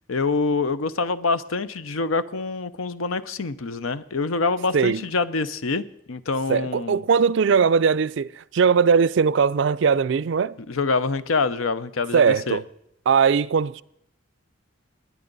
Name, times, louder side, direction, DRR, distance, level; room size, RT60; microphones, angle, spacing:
voice 1, 0.1-7.0 10.7-12.6, left 4 dB, 90° left, 0.7 m, -25 dB
voice 2, 4.7-5.1 6.5-10.6 12.1-12.6 13.1-13.8, right 6 dB, 65° right, 0.4 m, -20 dB
20.0 x 9.8 x 4.0 m
head